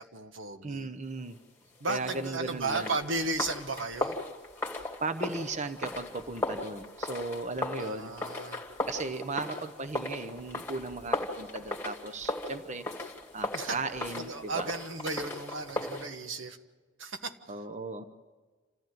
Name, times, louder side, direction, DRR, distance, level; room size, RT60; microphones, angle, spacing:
voice 1, 0.0-0.9 1.8-4.2 7.8-8.6 13.5-13.8 14.2-16.6 17.0-17.3, right 3 dB, 85° right, 7 dB, 1.4 m, -34 dB
voice 2, 0.6-1.4 1.9-2.9 5.0-8.1 8.9-12.9 13.3-14.7 17.5-18.0, right 3 dB, 35° right, 9 dB, 0.9 m, -36 dB
sound 1, 2.0-16.1, left 2 dB, 10° left, 2.1 m, -37 dB
28.0 x 15.0 x 9.2 m, 1.4 s
head